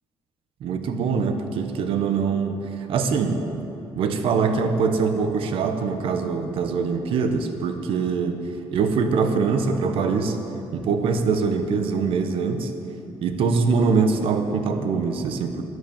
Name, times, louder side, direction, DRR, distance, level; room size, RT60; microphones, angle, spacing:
voice 1, 0.6-3.5 3.9-8.4 8.7-10.4 10.7-12.7 13.2-15.6, right 5 dB, 70° right, 7 dB, 1.2 m, -23 dB
13.0 x 9.7 x 7.3 m, 2.9 s
cardioid pair, 160°, 10 cm